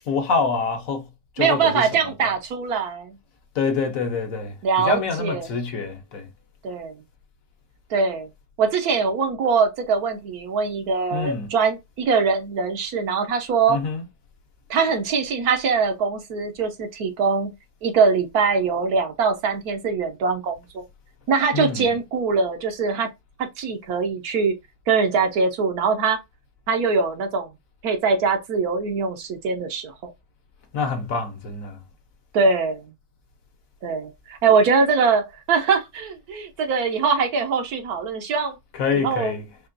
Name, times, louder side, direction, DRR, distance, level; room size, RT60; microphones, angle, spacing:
voice 1, 0.1-1.0 1.4-2.3 3.5-6.3 11.1-11.6 13.7-14.0 21.5-22.0 30.7-31.8 38.7-39.5, left 5 dB, 65° left, 1.2 m, -26 dB
voice 2, 1.4-3.2 4.6-5.5 6.6-7.0 7.9-8.3 8.6-13.8 14.7-17.5 17.8-20.8 21.3-23.1 23.4-24.5 24.9-26.2 26.7-27.5 27.8-30.1 32.3-32.8 33.8-38.6 38.9-39.3, right 5 dB, 80° right, 1.3 m, -22 dB
4.2 x 2.8 x 2.5 m
omnidirectional pair, 1.6 m